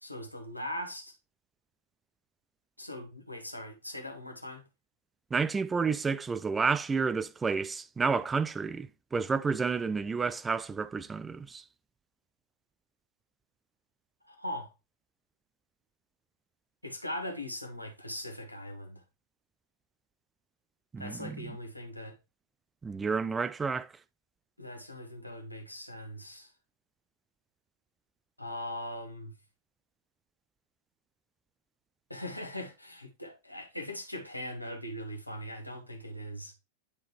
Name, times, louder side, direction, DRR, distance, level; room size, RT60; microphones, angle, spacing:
voice 1, 0.0-1.1 2.8-4.6 14.3-14.7 16.8-19.0 21.0-22.2 24.6-26.5 28.4-29.3 32.1-36.5, left 1 dB, 85° left, 1.0 m, -40 dB
voice 2, 5.3-11.6 20.9-21.4 22.8-23.9, right 5 dB, 15° right, 0.3 m, -30 dB
9.6 x 3.7 x 3.1 m
figure-of-eight pair, 90°, 0 cm